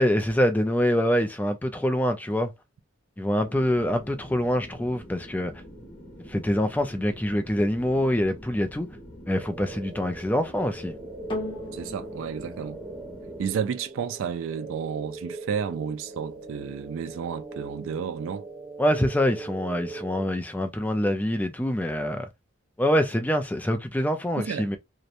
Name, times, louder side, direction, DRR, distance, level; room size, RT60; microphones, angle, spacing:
voice 1, 0.0-2.5 3.2-5.5 6.2-8.9 9.3-11.0 18.8-22.3 22.8-24.8, equal, 10° left, 0.3 m, -25 dB
sound 1, 3.4-13.5, equal, 45° left, 1.1 m, -45 dB
sound 2, 9.4-20.3, right 3 dB, 30° right, 0.9 m, -41 dB
sound 3, 11.3-19.9 20.6-20.7, left 1 dB, 25° left, 0.8 m, -43 dB
voice 2, 11.7-12.8 13.4-18.5 24.4-24.8, right 7 dB, 80° right, 0.3 m, -32 dB
2.8 x 2.1 x 2.4 m
head